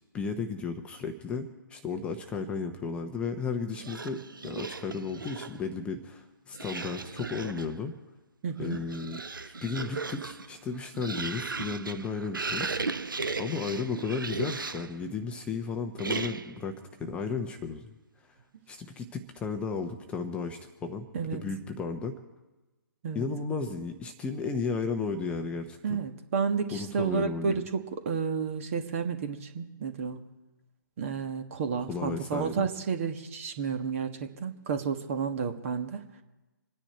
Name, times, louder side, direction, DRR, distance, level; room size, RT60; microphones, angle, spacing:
voice 1, 0.1-7.9 8.6-13.0 13.4-17.9 18.7-22.1 23.1-26.0 26.7-27.6 31.9-32.7, left 4 dB, 10° left, 5 dB, 0.9 m, -34 dB
sound 1, 3.7-5.7 6.5-7.8 8.5-15.0 16.0-16.7, right 4 dB, 75° right, 0.8 m, -36 dB
voice 2, 8.4-8.8 21.1-21.4 23.0-23.2 25.8-30.2 31.0-36.0, right 6 dB, 40° right, 7 dB, 1.6 m, -31 dB
26.5 x 10.0 x 4.5 m, 1.1 s
figure-of-eight pair, 135°, 11 cm